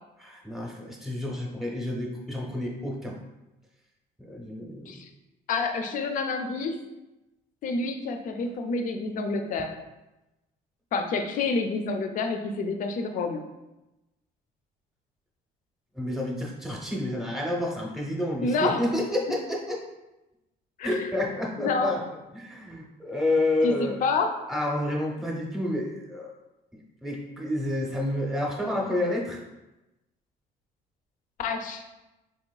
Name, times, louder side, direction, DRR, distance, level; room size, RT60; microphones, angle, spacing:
voice 1, 0.2-3.2 4.3-4.9 16.0-19.8 20.8-22.0 22.3-24.0 24.5-26.3 27.0-29.4, left 1 dB, ahead, -1 dB, 0.7 m, -29 dB
voice 2, 5.5-6.8 7.6-9.8 10.9-13.4 18.4-18.8 20.8-21.1 21.6-22.0 23.6-24.3 31.4-31.8, left 3 dB, 50° left, 6 dB, 0.4 m, -28 dB
3.8 x 3.0 x 2.3 m, 0.99 s
cardioid pair, 110°, 17 cm